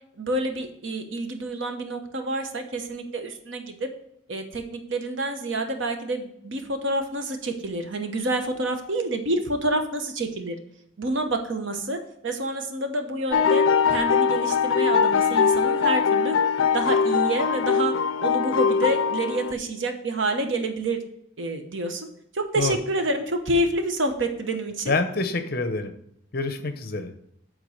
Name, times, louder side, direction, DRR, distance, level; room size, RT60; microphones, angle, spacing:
voice 1, 0.2-3.9 4.3-10.6 11.0-16.4 16.7-17.9 18.2-21.0 21.4-22.1 22.3-24.9, right 1 dB, 75° right, 6 dB, 1.0 m, -28 dB
sound 1, 13.3-19.5, left 6 dB, 80° left, 0.4 m, -21 dB
voice 2, 24.9-25.9 26.3-27.1, left 3 dB, 50° left, 9 dB, 0.7 m, -26 dB
8.2 x 3.8 x 6.5 m, 0.72 s
head